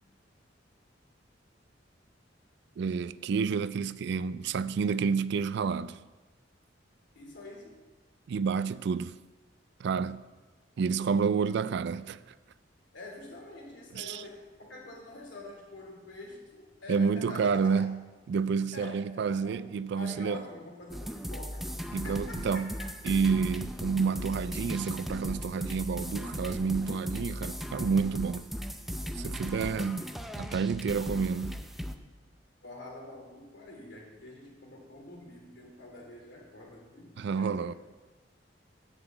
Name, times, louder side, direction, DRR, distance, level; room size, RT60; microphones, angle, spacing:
voice 1, 2.8-6.0 8.3-9.1 9.8-10.2 10.8-12.2 14.0-14.2 16.9-18.0 18.3-20.4 21.9-22.7 23.1-28.4 29.2-30.0 30.4-31.6 37.2-37.7, right 5 dB, 65° right, 0.3 m, -29 dB
voice 2, 7.1-7.8 12.9-17.9 18.7-23.2 32.6-37.8, left 2 dB, 75° left, 2.8 m, -46 dB
sound 1, 20.9-32.0, equal, ahead, 0.5 m, -37 dB
8.9 x 5.8 x 7.9 m
head